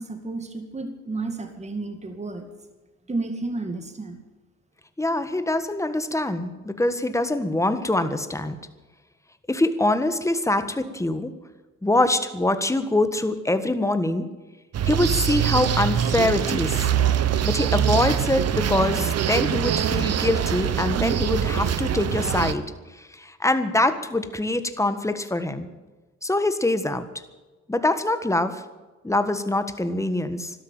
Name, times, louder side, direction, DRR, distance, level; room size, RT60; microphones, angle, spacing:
voice 1, 0.0-2.5 3.1-4.2, right 3 dB, 20° right, 6 dB, 2.2 m, -32 dB
voice 2, 5.0-8.5 9.5-11.3 11.8-14.3 14.9-16.9 17.4-22.6 23.2-25.7 26.2-27.1 27.7-28.6 29.0-30.5, left 2 dB, 10° left, 10 dB, 1.5 m, -24 dB
sound 1, 14.7-22.5, right 9 dB, 55° right, 1.1 m, -23 dB
13.0 x 12.5 x 8.8 m, 1.2 s
cardioid pair, 90°, 30 cm